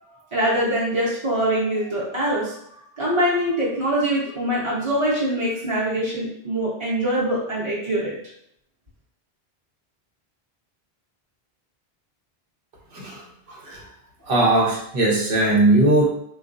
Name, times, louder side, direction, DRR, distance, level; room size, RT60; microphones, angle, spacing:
voice 1, 0.3-2.5 3.0-8.1, right 1 dB, 30° right, -8 dB, 0.8 m, -23 dB
voice 2, 13.5-13.8 14.2-16.0, right 2 dB, 65° right, -1 dB, 0.9 m, -19 dB
3.6 x 2.3 x 2.5 m, 0.73 s
omnidirectional pair, 1.1 m